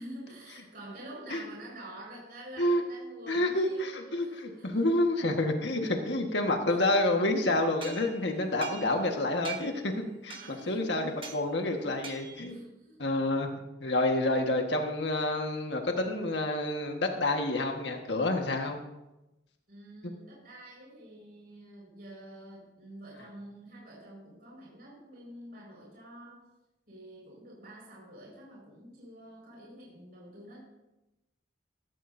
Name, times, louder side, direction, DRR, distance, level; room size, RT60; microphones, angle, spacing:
voice 1, 0.0-4.9 5.4-5.9 6.7-6.8 10.3-11.0 12.5-13.0 19.7-26.5 26.9-30.6, right 1 dB, 55° right, -4 dB, 5.1 m, -48 dB
voice 2, 3.3-12.7 13.0-13.5 13.8-18.8, left 1 dB, 75° left, 3 dB, 1.5 m, -29 dB
sound 1, 7.8-9.1 9.4-9.9 10.3-10.7 11.2-11.4 12.0-12.5, right 6 dB, 30° right, 1.3 m, -43 dB
16.0 x 16.0 x 2.7 m, 0.96 s
head